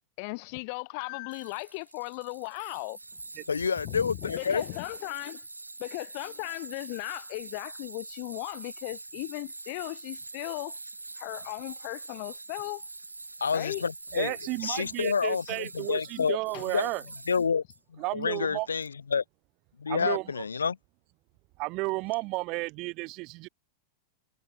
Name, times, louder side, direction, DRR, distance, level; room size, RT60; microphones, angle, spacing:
voice 1, 0.2-3.0 3.8-5.5 5.8-10.8 11.2-12.8 13.5-13.8 15.5-15.6 16.2-16.3 16.5-16.7, left 32 dB, 45° left, 2.1 m, -37 dB
Tools, 1.3-17.8, right 2 dB, 80° right, 1.9 m, -44 dB
voice 2, 3.5-4.6 13.4-14.3 14.6-16.4 16.7-16.9 17.3-17.6 17.9-19.2 19.8-20.8, left 6 dB, 75° left, 2.5 m, -28 dB
voice 3, 14.1-17.0 18.0-18.7 19.9-20.3 21.6-23.5, right 24 dB, 40° right, 1.0 m, -33 dB
figure-of-eight pair, 90°, 0 cm